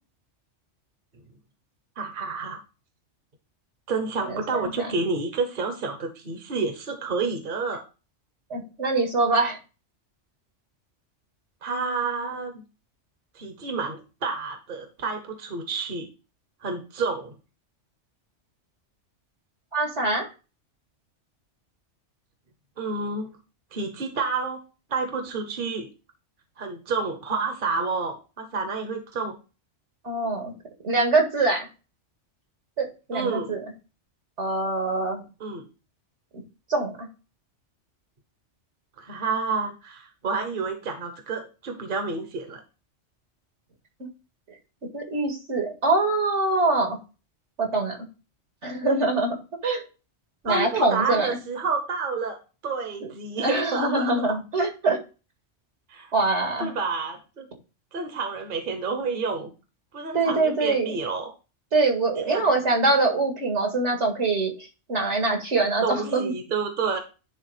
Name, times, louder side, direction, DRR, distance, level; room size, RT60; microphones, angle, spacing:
voice 1, 2.0-2.6 3.9-7.8 11.6-12.6 13.3-16.1 16.6-17.3 22.8-23.3 23.7-24.6 24.9-25.9 26.6-29.4 33.1-33.5 35.4-35.7 39.0-42.6 50.4-52.4 52.6-54.1 55.9-56.1 56.6-57.5 57.9-59.5 59.9-61.3 62.3-62.5 65.8-67.0, right 4 dB, 45° right, 5 dB, 1.2 m, -29 dB
voice 2, 4.3-5.0 8.5-9.6 19.7-20.3 30.0-30.5 30.8-31.7 32.8-33.6 34.4-35.2 36.7-37.1 44.0-44.1 44.5-44.6 44.9-47.0 47.6-48.0 48.6-49.4 49.6-49.8 50.4-51.4 53.4-55.0 56.1-56.7 60.1-61.0 61.7-66.3, right 3 dB, 70° right, 3 dB, 2.2 m, -24 dB
10.5 x 3.6 x 4.9 m, 0.33 s
omnidirectional pair, 1.2 m